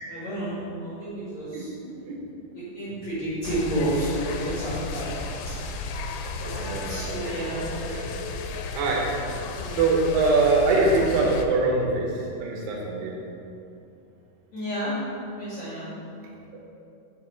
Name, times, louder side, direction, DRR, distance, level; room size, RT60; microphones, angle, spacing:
voice 1, 0.0-1.7 2.5-5.1 5.4-5.6 6.4-7.6 9.5-10.0 14.5-14.9 15.3-15.9, right 1 dB, 70° left, -10 dB, 1.6 m, -31 dB
voice 2, 1.5-2.2 6.6-7.4 7.9-8.1 8.8-9.0 9.7-13.1 16.5-16.6, right 3 dB, 80° right, -1 dB, 2.4 m, -24 dB
sound 1, 3.4-11.5, left 3 dB, 85° left, 3.3 m, -34 dB
7.1 x 5.9 x 4.4 m, 2.6 s
omnidirectional pair, 6.0 m